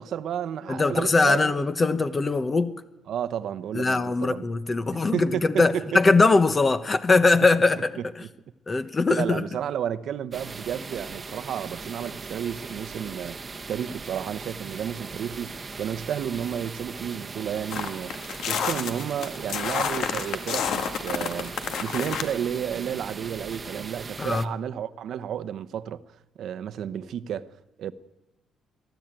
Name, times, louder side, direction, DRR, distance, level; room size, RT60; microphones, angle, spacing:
voice 1, 0.0-1.7 3.1-4.5 5.1-6.0 8.0-8.3 9.1-26.0 26.4-27.5 27.8-27.9, right 9 dB, 70° right, 0.9 m, -32 dB
voice 2, 0.7-2.8 3.7-7.9 8.7-9.4 24.2-24.4, left 3 dB, 30° left, 1.1 m, -21 dB
sound 1, 10.3-24.5, right 4 dB, 30° right, 1.0 m, -39 dB
sound 2, 17.7-22.3, left 7 dB, 75° left, 1.9 m, -29 dB
22.5 x 13.0 x 9.0 m
cardioid pair, 90°, 0 cm